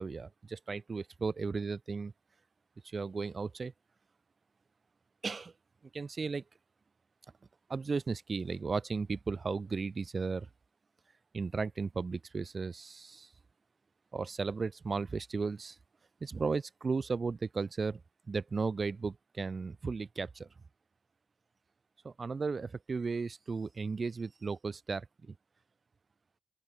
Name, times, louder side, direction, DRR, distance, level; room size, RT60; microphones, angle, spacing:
voice 1, 0.0-2.1 2.8-3.7 5.2-5.5 5.9-6.4 7.7-10.5 11.3-13.3 14.1-15.8 16.2-18.0 18.3-20.5 22.0-25.3, right 4 dB, 35° right, 4.8 m, -35 dB
open air
wide cardioid pair, 170°, 0 cm